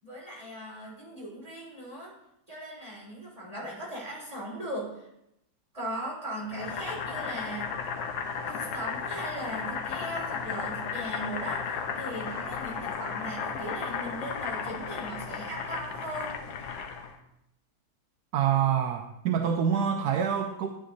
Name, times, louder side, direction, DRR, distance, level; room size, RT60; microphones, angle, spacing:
voice 1, 0.0-2.1 2.5-5.1 5.7-7.7 8.5-16.4, right 1 dB, 20° right, -6 dB, 3.8 m, -38 dB
Boiling, 6.5-17.2, left 6 dB, 90° left, 1.6 m, -35 dB
voice 2, 18.3-20.7, right 8 dB, 70° right, 5 dB, 1.0 m, -26 dB
13.0 x 9.6 x 2.7 m, 0.82 s
omnidirectional pair, 2.1 m